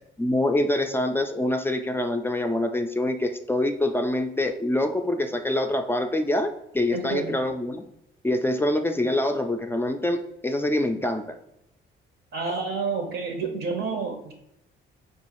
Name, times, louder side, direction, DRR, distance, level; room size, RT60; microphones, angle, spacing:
voice 1, 0.2-7.8 8.2-11.4, left 1 dB, 10° left, 6 dB, 0.3 m, -25 dB
voice 2, 6.9-7.4 12.3-14.3, right 4 dB, 60° right, 3 dB, 0.6 m, -29 dB
4.4 x 2.4 x 2.9 m, 0.81 s
cardioid pair, 90°, 20 cm